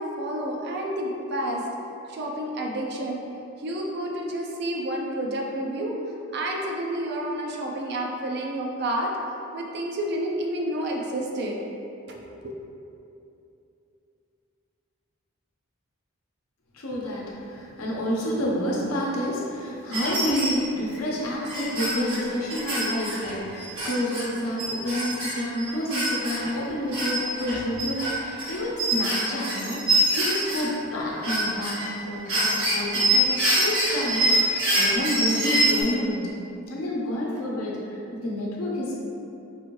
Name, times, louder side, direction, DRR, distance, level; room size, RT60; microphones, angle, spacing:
voice 1, 0.0-1.6 2.1-3.2 3.6-6.0 6.3-9.1 9.5-11.6 12.1-12.4, right 1 dB, 50° right, -1 dB, 0.4 m, -29 dB
voice 2, 16.7-36.3 36.7-38.9, equal, 85° left, -4 dB, 0.8 m, -29 dB
sound 1, 19.9-20.6 20.9-21.0 21.4-24.2 24.6-26.5 26.9-30.6 31.0-31.9 32.3-35.8, right 1 dB, 75° right, 1.2 m, -25 dB
4.7 x 2.6 x 3.0 m, 2.8 s
head